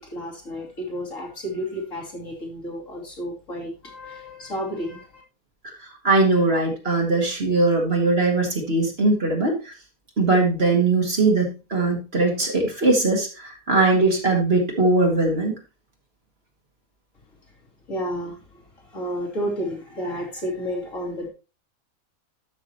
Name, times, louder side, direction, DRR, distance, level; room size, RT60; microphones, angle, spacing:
voice 1, 0.0-5.2 17.9-18.4 18.9-21.3, equal, 60° left, -2 dB, 3.3 m, -31 dB
voice 2, 6.0-9.7 10.2-13.3 13.7-15.5, right 3 dB, 45° right, 1 dB, 2.2 m, -20 dB
12.5 x 6.2 x 3.0 m, 0.31 s
omnidirectional pair, 1.5 m